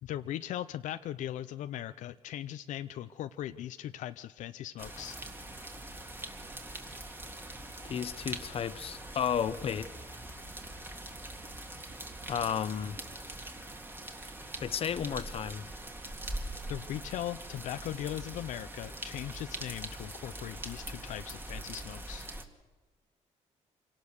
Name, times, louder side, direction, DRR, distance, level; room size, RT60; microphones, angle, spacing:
voice 1, 0.0-5.2 16.4-22.3, left 12 dB, 80° left, 0.6 m, -39 dB
sound 1, 4.8-22.4, right 1 dB, 15° right, 2.1 m, -43 dB
voice 2, 7.8-9.9 12.3-13.0 14.6-15.7, left 8 dB, 50° left, 0.8 m, -33 dB
25.5 x 18.0 x 6.6 m
cardioid pair, 100°, 13 cm